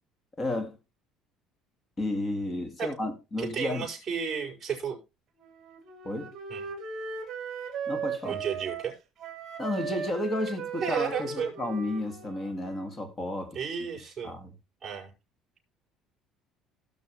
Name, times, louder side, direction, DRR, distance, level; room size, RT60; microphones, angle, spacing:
voice 1, 0.4-0.8 2.0-3.9 6.0-6.3 7.9-8.4 9.6-13.6 14.2-14.5, left 1 dB, 20° left, 2.1 m, -32 dB
voice 2, 3.4-5.0 6.5-6.7 8.2-8.9 10.8-11.5 13.5-14.4 14.8-15.1, right 7 dB, 15° right, 6.0 m, -33 dB
Wind instrument woodwind instrument, 5.4-8.9 9.2-13.1, right 6 dB, 40° right, 3.2 m, -38 dB
18.5 x 6.7 x 3.2 m
cardioid pair, 150°, 0 cm